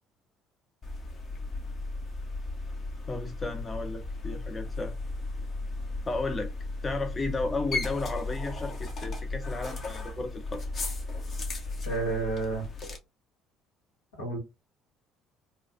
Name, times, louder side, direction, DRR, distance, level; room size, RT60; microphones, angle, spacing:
sound 1, 0.8-13.0, left 2 dB, 45° left, 1.0 m, -35 dB
voice 1, 3.1-4.9 6.1-6.5 6.8-10.6, left 3 dB, 30° left, 0.7 m, -33 dB
voice 2, 11.8-12.7 14.2-14.4, right 3 dB, 80° left, 1.7 m, -30 dB
3.2 x 2.3 x 2.6 m
hypercardioid pair, 55°, 0 cm